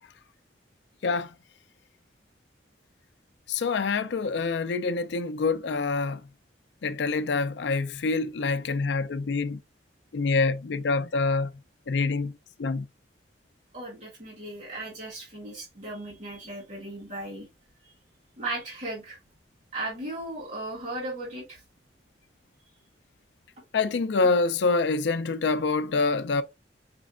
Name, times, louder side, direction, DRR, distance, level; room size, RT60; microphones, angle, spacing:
voice 1, 1.0-1.3 3.5-6.2 6.8-9.6 10.1-11.5 11.9-12.3 12.6-12.9 23.7-26.4, left 4 dB, 75° left, 0.4 m, -26 dB
voice 2, 13.7-17.5 17.8-17.9 18.4-19.2 19.7-21.6, right 2 dB, 45° right, 2.1 m, -36 dB
5.2 x 3.2 x 2.4 m
head